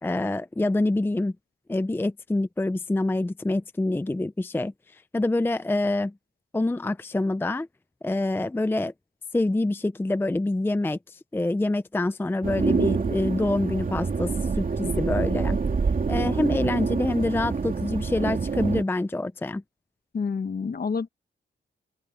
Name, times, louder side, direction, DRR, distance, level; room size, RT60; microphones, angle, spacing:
voice 1, 0.0-1.3 1.7-6.1 6.5-7.7 8.0-8.9 9.3-15.6 16.1-19.6, left 2 dB, 10° left, 0.5 m, -26 dB
sound 1, 12.4-18.8, right 4 dB, 45° right, 2.6 m, -26 dB
voice 2, 20.1-21.1, left 5 dB, 50° left, 1.4 m, -28 dB
open air
wide cardioid pair, 105°, 20 cm